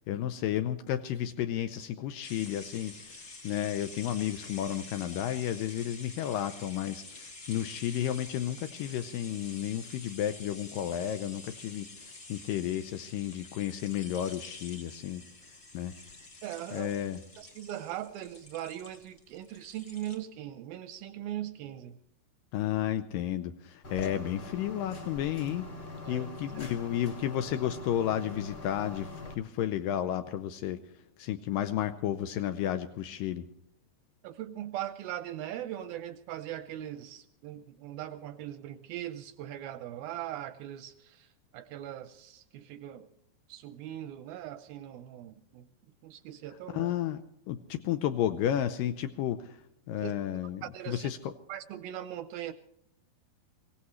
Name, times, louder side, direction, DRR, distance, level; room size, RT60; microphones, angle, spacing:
voice 1, 0.1-2.9 3.4-15.2 15.7-15.9 16.7-17.2 22.5-25.7 26.1-30.8 31.2-33.5 46.7-47.2 47.5-49.6 49.9-51.3, left 11 dB, 90° left, 9 dB, 1.9 m, -32 dB
sound 1, 2.2-20.2, left 3 dB, 60° left, 0.8 m, -48 dB
voice 2, 16.4-16.9 17.4-22.0 26.0-26.3 26.6-26.7 34.2-41.3 41.5-43.1 43.5-45.7 46.0-46.9 50.0-50.1 50.6-51.1 51.5-52.5, right 12 dB, 80° right, 11 dB, 2.2 m, -40 dB
sound 2, 23.8-29.3, left 2 dB, 40° left, 1.3 m, -43 dB
24.0 x 17.0 x 3.2 m, 0.74 s
omnidirectional pair, 4.8 m